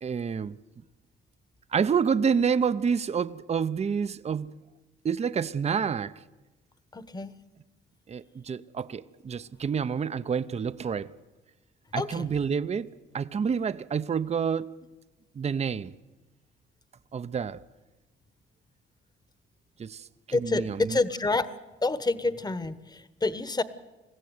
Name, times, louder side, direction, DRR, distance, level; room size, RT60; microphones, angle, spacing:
voice 1, 0.0-0.6 1.7-4.5 5.0-6.1 8.1-11.1 11.9-14.7 15.3-15.9 17.1-17.6 19.8-21.0, right 6 dB, 35° right, 0.7 m, -28 dB
voice 2, 6.9-7.3 12.0-12.3 20.3-21.5 21.8-23.6, left 3 dB, 20° left, 1.2 m, -28 dB
22.0 x 15.5 x 9.4 m
cardioid pair, 90°, 20 cm